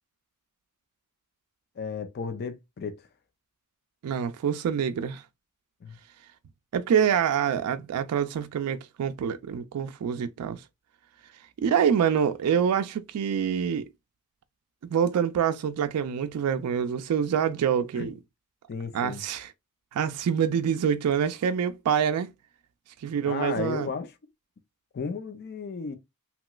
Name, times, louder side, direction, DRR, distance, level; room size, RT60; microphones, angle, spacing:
voice 1, 1.8-3.1 5.8-6.0 18.0-18.1 18.7-19.2 23.2-24.1 24.9-25.9, left 5 dB, 45° left, 0.4 m, -34 dB
voice 2, 4.0-5.2 6.7-10.6 11.6-13.9 14.9-18.1 18.9-19.5 19.9-22.3 23.0-23.9, right 8 dB, 85° right, 0.3 m, -26 dB
2.9 x 2.9 x 2.2 m
head